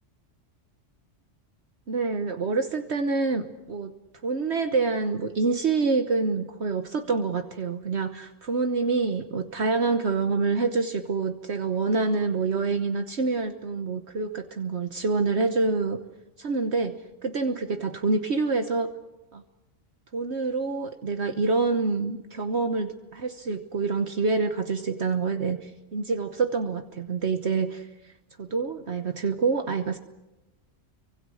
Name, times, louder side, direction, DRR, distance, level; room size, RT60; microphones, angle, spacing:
voice 1, 1.9-3.9 4.2-16.0 16.4-16.9 17.2-18.9 19.3-19.4 20.1-28.1 28.4-30.0, right 4 dB, 65° right, 7 dB, 1.4 m, -27 dB
30.0 x 24.5 x 6.4 m, 1.0 s
omnidirectional pair, 1.3 m